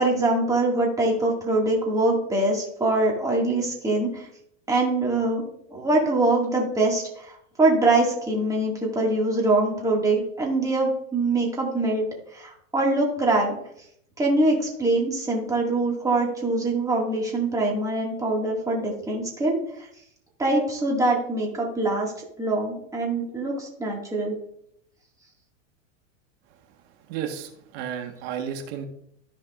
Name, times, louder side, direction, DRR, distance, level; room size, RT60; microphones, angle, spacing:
voice 1, 0.0-4.3 4.7-5.4 5.7-12.1 12.3-13.5 14.2-19.9 20.4-22.1 22.4-24.4, right 2 dB, 10° right, -2 dB, 2.1 m, -23 dB
voice 2, 27.1-28.9, right 8 dB, 50° right, 5 dB, 1.6 m, -32 dB
14.0 x 5.2 x 2.5 m, 0.71 s
supercardioid pair, 145°, 39 cm